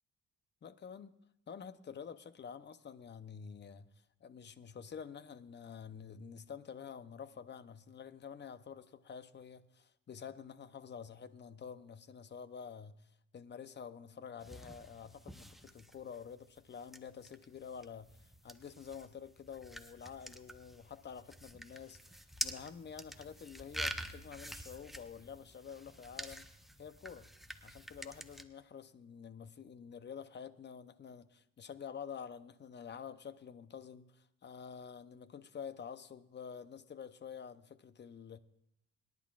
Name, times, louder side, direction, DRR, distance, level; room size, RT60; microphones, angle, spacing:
voice 1, 0.6-1.1 1.5-3.9 4.2-13.0 13.3-18.1 18.4-26.5 26.8-27.3 27.6-38.4, left 7 dB, 35° left, 0.7 m, -48 dB
sound 1, 14.4-28.4, right 1 dB, ahead, 0.7 m, -47 dB
24.0 x 10.5 x 2.4 m
cardioid pair, 90°, 30 cm